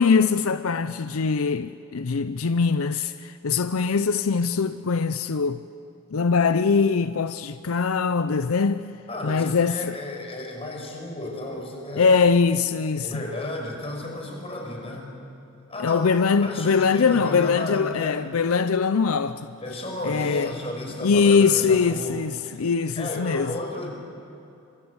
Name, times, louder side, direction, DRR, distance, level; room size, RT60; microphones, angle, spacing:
voice 1, 0.0-5.6 6.1-8.9 9.2-10.0 12.0-13.2 15.8-19.5 20.0-20.5 21.0-23.5, left 5 dB, 85° left, 0.6 m, -22 dB
voice 2, 9.1-12.2 13.0-15.1 15.7-16.1 16.4-18.2 19.6-22.2 22.4-22.6 23.0-23.9, left 2 dB, 30° left, 5.3 m, -33 dB
25.5 x 23.0 x 8.1 m
head